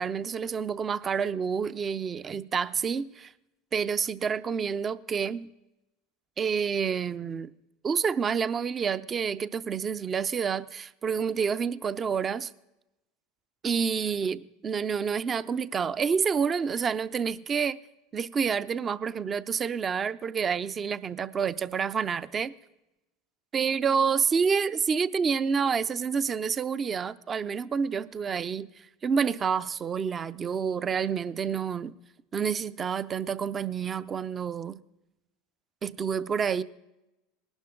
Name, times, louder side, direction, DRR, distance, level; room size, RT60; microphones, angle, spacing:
voice 1, 0.0-3.3 3.7-5.5 6.4-7.5 7.8-12.5 13.6-17.8 18.1-22.5 23.5-32.0 32.3-34.8 35.8-36.6, right 6 dB, 30° right, 0.5 m, -28 dB
19.5 x 11.5 x 3.8 m
hypercardioid pair, 95°, 0 cm